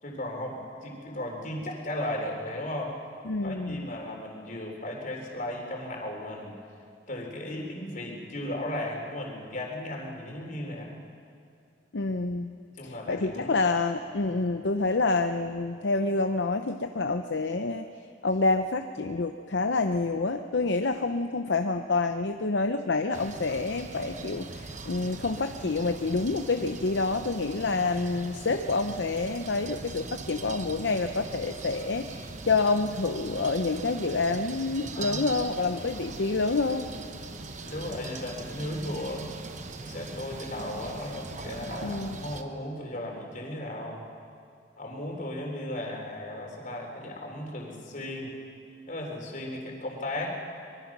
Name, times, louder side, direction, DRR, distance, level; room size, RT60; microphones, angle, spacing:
voice 1, 0.0-2.9 3.4-6.6 7.1-11.0 12.8-13.6 14.2-14.4 34.9-35.3 37.6-39.3 39.8-44.0 44.8-48.3 48.9-50.4, left 1 dB, 45° left, 0 dB, 3.7 m, -36 dB
voice 2, 3.2-3.9 11.9-12.5 12.8-17.9 18.2-36.9 41.8-42.3, left 3 dB, 65° left, 7 dB, 0.7 m, -28 dB
sound 1, 23.1-42.4, right 3 dB, 40° right, 1.1 m, -41 dB
24.5 x 22.0 x 6.1 m, 2.3 s
head